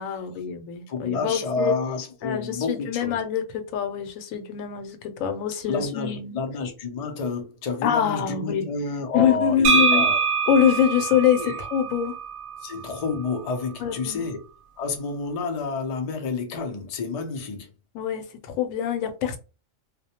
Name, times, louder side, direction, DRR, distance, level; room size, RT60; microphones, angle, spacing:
voice 1, 0.0-1.8 2.2-6.4 7.8-8.7 9.1-10.1 10.5-12.2 13.8-14.3 17.9-19.4, left 9 dB, 80° left, 1.0 m, -24 dB
voice 2, 0.9-3.2 5.7-10.2 11.4-11.6 12.6-14.4 14.8-17.7, left 4 dB, 65° left, 0.3 m, -29 dB
sound 1, 9.6-13.4, right 5 dB, 90° right, 1.0 m, -24 dB
2.3 x 2.1 x 2.7 m
omnidirectional pair, 1.4 m